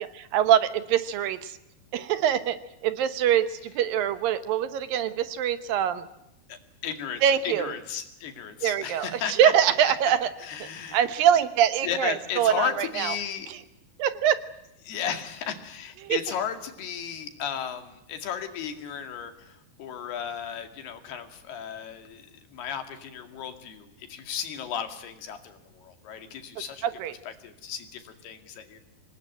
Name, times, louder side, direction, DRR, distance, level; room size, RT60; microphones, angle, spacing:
voice 1, 0.0-1.6 1.9-6.1 7.2-7.7 8.6-10.3 10.6-13.1 13.5-13.6 14.0-14.4 16.0-16.2 26.8-27.1, right 9 dB, 70° right, 12 dB, 2.6 m, -24 dB
voice 2, 6.5-9.5 10.4-11.0 11.8-13.5 14.8-26.9 27.2-28.8, left 8 dB, 85° left, 7 dB, 4.3 m, -35 dB
26.0 x 19.5 x 9.1 m, 0.87 s
omnidirectional pair, 4.5 m